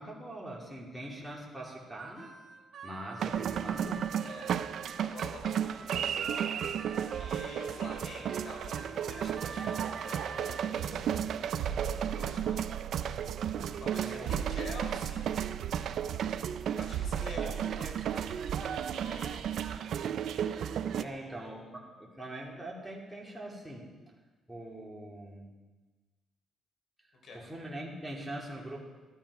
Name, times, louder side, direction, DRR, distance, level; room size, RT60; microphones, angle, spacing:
voice 1, 0.0-2.3 2.8-4.1 14.0-14.4 21.0-23.9 24.5-25.5 27.3-28.8, right 1 dB, 5° right, -3 dB, 2.7 m, -43 dB
Harmonica, 1.6-5.1 5.6-10.7, right 5 dB, 50° right, 1.7 m, -46 dB
sound 1, 3.2-21.0, right 9 dB, 70° right, 0.5 m, -34 dB
voice 2, 5.0-6.6 7.1-12.6 13.8-15.3 16.7-19.4 20.9-21.5 27.2-27.4, left 2 dB, 60° left, 1 dB, 3.8 m, -47 dB
sound 2, 10.8-20.0 20.3-20.4, right 8 dB, 85° right, 1.0 m, -40 dB
13.5 x 11.0 x 4.9 m, 1.3 s
cardioid pair, 90°, 0 cm